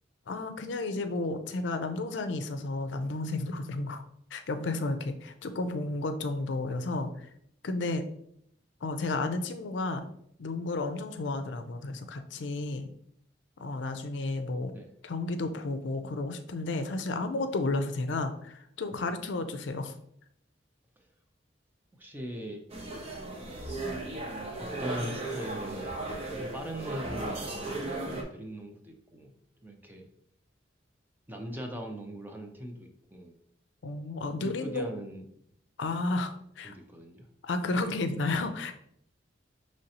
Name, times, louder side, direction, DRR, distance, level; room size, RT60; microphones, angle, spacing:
voice 1, 0.3-4.0 4.3-7.3 7.6-8.0 8.8-10.1 10.4-12.9 13.6-14.7 15.0-19.9 33.8-34.9 35.8-36.7 37.4-38.7, left 2 dB, 70° left, 8 dB, 0.5 m, -32 dB
voice 2, 21.9-22.6 23.2-23.6 24.6-29.3 29.6-30.1 31.3-33.3 34.2-35.3 36.6-37.3, equal, 10° right, 3 dB, 0.5 m, -41 dB
sound 1, 22.7-28.2, right 2 dB, 35° right, 0.8 m, -36 dB
5.3 x 3.1 x 2.8 m, 0.70 s
head